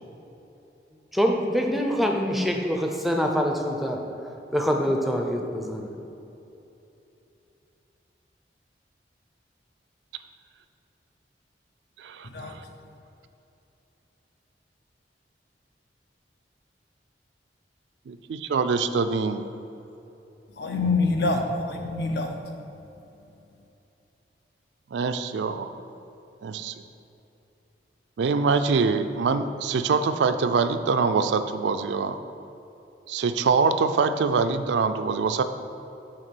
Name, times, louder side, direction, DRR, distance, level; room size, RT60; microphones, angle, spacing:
voice 1, 1.1-4.0 4.5-5.9, equal, ahead, 2 dB, 0.5 m, -25 dB
voice 2, 18.1-19.4 24.9-25.7 26.4-26.7 28.2-32.2 33.1-35.4, right 5 dB, 80° right, 9 dB, 0.4 m, -24 dB
voice 3, 20.6-22.3, left 3 dB, 65° left, 4 dB, 0.7 m, -26 dB
6.5 x 3.5 x 6.2 m, 2.9 s
head